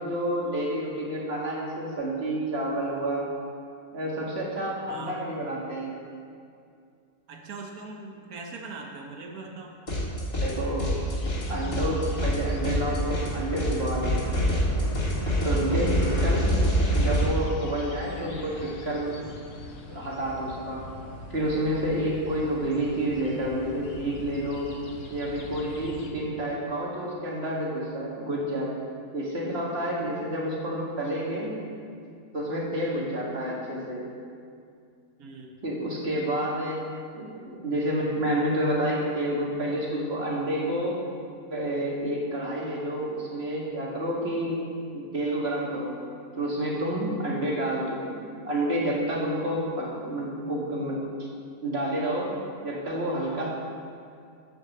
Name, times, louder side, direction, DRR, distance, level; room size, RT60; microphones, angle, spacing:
voice 1, 0.0-3.3 3.9-6.0 10.4-10.9 11.5-14.5 15.4-16.6 16.9-19.2 19.9-20.9 21.3-24.7 25.1-28.8 29.1-31.7 32.3-34.0 35.6-36.8 37.1-41.0 41.5-44.6 44.9-46.0 46.4-51.3 51.6-52.4 52.6-53.5, right 1 dB, 45° right, -4 dB, 2.0 m, -29 dB
voice 2, 7.3-9.8 16.0-16.2 32.9-33.1 35.2-35.5, right 3 dB, 75° right, 2 dB, 1.3 m, -41 dB
sound 1, 9.9-10.5 10.8-17.3, equal, 70° left, 2.8 m, -26 dB
sound 2, 10.9-26.1, left 2 dB, 50° left, 1.2 m, -43 dB
8.5 x 6.5 x 7.1 m, 2.4 s
omnidirectional pair, 1.6 m